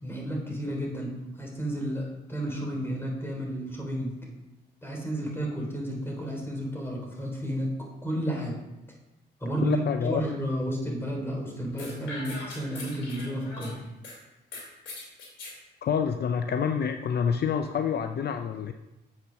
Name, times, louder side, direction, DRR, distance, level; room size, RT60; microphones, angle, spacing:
voice 1, 0.0-4.2 4.8-7.7 8.0-8.6 9.4-13.7, right 1 dB, 10° left, -1 dB, 3.4 m, -32 dB
voice 2, 9.6-10.2 15.8-18.7, left 7 dB, 60° left, 7 dB, 0.5 m, -27 dB
sound 1, 11.8-14.2 14.5-15.6, left 2 dB, 85° left, 3.0 m, -41 dB
7.4 x 5.9 x 6.4 m, 0.97 s
cardioid pair, 75°, 19 cm